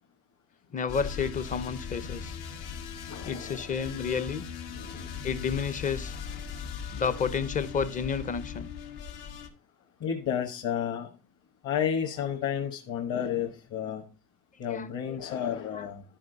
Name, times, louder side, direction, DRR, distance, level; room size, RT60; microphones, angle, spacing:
voice 1, 0.7-2.3 3.2-4.4 5.2-6.1 6.9-8.7 14.7-14.9 15.7-15.8, left 6 dB, 20° left, 14 dB, 0.6 m, -31 dB
sound 1, 0.9-9.5, left 7 dB, 60° left, 1.9 m, -39 dB
voice 2, 3.1-3.8 4.7-5.2 10.0-11.1 11.6-14.0 14.6-16.0, left 8 dB, 35° left, 1 dB, 1.5 m, -32 dB
12.0 x 5.5 x 3.9 m, 0.34 s
cardioid pair, 150°, 43 cm